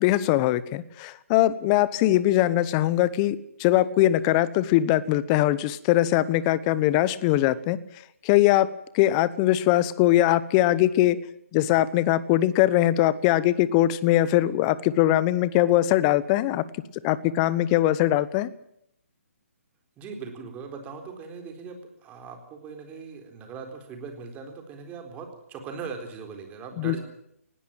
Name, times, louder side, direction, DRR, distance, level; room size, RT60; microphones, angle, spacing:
voice 1, 0.0-7.8 8.2-8.7 8.9-11.2 11.5-16.6 17.0-18.5 26.8-26.9, left 14 dB, 25° left, 18 dB, 1.0 m, -21 dB
voice 2, 20.0-27.0, right 5 dB, 20° right, 5 dB, 4.0 m, -40 dB
20.0 x 17.0 x 8.9 m, 0.73 s
hypercardioid pair, 145°, 8 cm